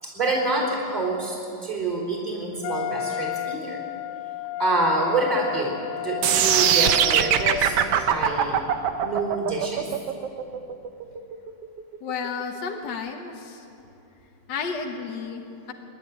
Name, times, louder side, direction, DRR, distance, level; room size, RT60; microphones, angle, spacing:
voice 1, 0.0-3.8 4.6-8.6 9.0-9.9, right 2 dB, 15° right, -4 dB, 3.6 m, -27 dB
Wind instrument woodwind instrument, 2.6-7.9, left 14 dB, 80° left, 1.9 m, -33 dB
sound 1, 6.2-12.3, right 9 dB, 65° right, 1.7 m, -21 dB
voice 2, 12.0-13.6 14.5-15.7, left 5 dB, 50° left, 2 dB, 1.4 m, -32 dB
27.0 x 11.5 x 9.9 m, 2.8 s
omnidirectional pair, 3.4 m